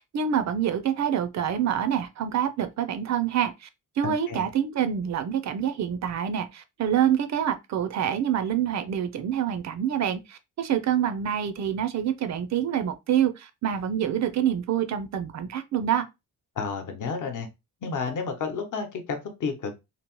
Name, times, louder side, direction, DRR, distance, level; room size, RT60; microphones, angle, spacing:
voice 1, 0.0-3.7 4.0-16.1, right 9 dB, 55° right, 0.4 m, -26 dB
voice 2, 4.0-4.4 16.6-17.5 17.8-19.7, left 5 dB, 60° left, 0.8 m, -31 dB
2.9 x 2.0 x 2.9 m
cardioid pair, 120°, 34 cm